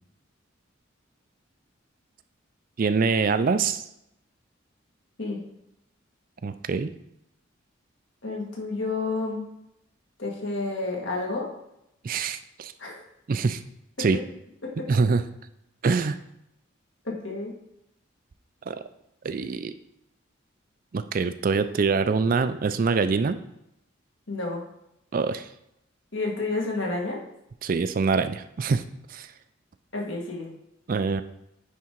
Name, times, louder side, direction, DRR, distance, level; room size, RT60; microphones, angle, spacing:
voice 1, 2.8-3.8 6.4-6.9 12.0-12.7 13.3-13.6 14.0-14.2 14.9-15.2 15.8-16.2 18.7-18.8 19.2-19.7 20.9-23.4 25.1-25.5 27.6-29.3 30.9-31.2, right 4 dB, 45° right, 11 dB, 0.4 m, -24 dB
voice 2, 8.2-9.4 10.2-11.5 12.8-13.0 14.0-14.2 14.6-14.9 17.0-17.5 24.3-24.6 26.1-27.2 29.9-30.5, left 3 dB, 70° left, -1 dB, 1.8 m, -30 dB
9.3 x 3.7 x 4.6 m, 0.81 s
head